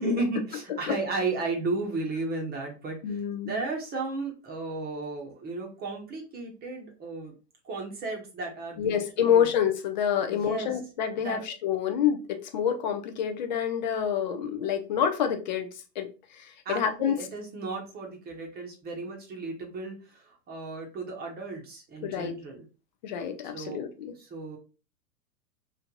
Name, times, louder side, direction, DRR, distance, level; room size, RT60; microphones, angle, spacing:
voice 1, 0.0-7.3 7.6-9.5 10.3-10.8 11.2-11.4 16.6-22.7 23.5-24.6, right 3 dB, 20° right, 0.9 m, -34 dB
voice 2, 3.0-3.5 8.8-15.7 16.0-16.1 16.7-17.2 22.0-22.4 23.0-24.1, left 8 dB, 30° left, 0.4 m, -27 dB
3.1 x 2.5 x 3.8 m
figure-of-eight pair, 105°, 50 cm